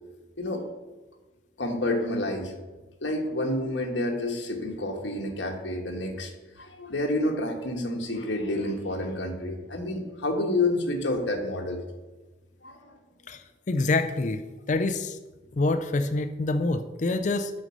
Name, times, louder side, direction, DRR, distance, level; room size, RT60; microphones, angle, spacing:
voice 1, 1.6-2.5 3.0-6.3 6.6-11.8 12.6-12.9, left 1 dB, 75° left, 2 dB, 1.3 m, -29 dB
voice 2, 13.3-14.4 14.7-15.2 15.5-17.5, left 2 dB, 40° left, 9 dB, 0.4 m, -26 dB
6.3 x 5.3 x 6.5 m, 1.1 s
head